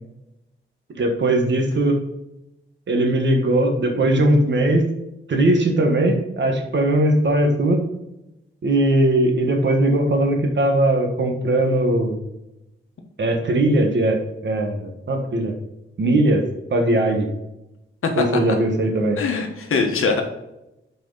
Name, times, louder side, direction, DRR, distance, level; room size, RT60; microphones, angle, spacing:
voice 1, 0.9-2.0 2.9-4.9 5.3-7.8 8.6-12.2 13.2-15.5 16.0-17.3 18.2-19.2, right 1 dB, 60° right, 4 dB, 1.5 m, -19 dB
voice 2, 18.0-18.6 19.2-20.2, left 4 dB, 85° left, 3 dB, 1.3 m, -22 dB
7.9 x 4.9 x 4.0 m, 0.90 s
wide cardioid pair, 145°, 21 cm